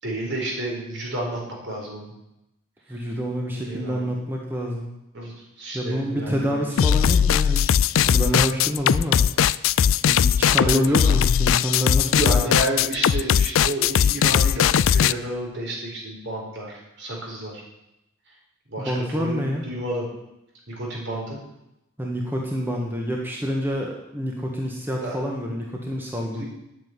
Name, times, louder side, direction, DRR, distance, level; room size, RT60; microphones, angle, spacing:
voice 1, 0.0-2.1 2.9-3.0 3.6-4.1 5.1-6.7 9.9-10.0 10.6-11.1 12.1-17.6 18.7-20.1 20.7-21.4 25.0-25.2 26.3-26.4, right 1 dB, 55° right, -1 dB, 4.4 m, -31 dB
voice 2, 2.9-4.9 5.7-7.8 8.1-9.2 10.1-12.6 18.8-19.6 22.0-26.4, equal, 10° right, -1 dB, 1.5 m, -27 dB
sound 1, 6.8-15.1, left 8 dB, 70° left, 0.4 m, -19 dB
9.2 x 8.9 x 9.6 m, 0.88 s
head